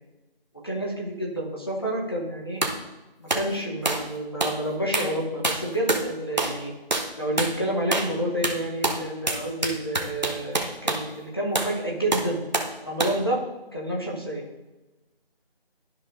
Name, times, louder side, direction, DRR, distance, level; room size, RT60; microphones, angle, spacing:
voice 1, 0.6-2.6 3.2-6.7 7.2-12.4 12.8-13.4 13.7-14.4, right 1 dB, 25° left, -3 dB, 0.9 m, -29 dB
sound 1, 2.6-2.8 3.3-3.5 3.9-4.1 4.4-4.6 4.9-5.2 5.4-6.1 6.4-6.6 6.9-7.1 7.4-7.6 7.9-8.2 8.4-11.1 11.6-11.8 12.1-12.7 13.0-13.2, right 2 dB, 45° right, 0.9 m, -26 dB
12.5 x 4.9 x 2.5 m, 1.1 s
figure-of-eight pair, 175°, 30 cm